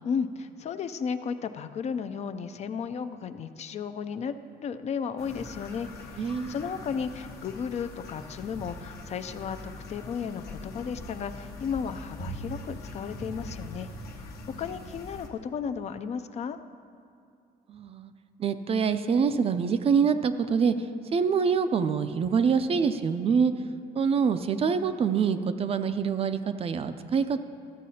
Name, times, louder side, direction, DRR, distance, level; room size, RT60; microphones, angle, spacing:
voice 1, 0.0-4.3 4.6-13.9 14.2-16.6, left 6 dB, 40° left, 10 dB, 0.4 m, -34 dB
sound 1, 5.2-15.3, left 1 dB, 70° left, 1.1 m, -42 dB
voice 2, 6.2-6.5 17.7-18.1 18.4-20.7 21.1-23.5 23.9-27.4, right 6 dB, 35° right, 11 dB, 0.4 m, -25 dB
13.5 x 7.4 x 2.8 m, 2.5 s
cardioid pair, 110°, 17 cm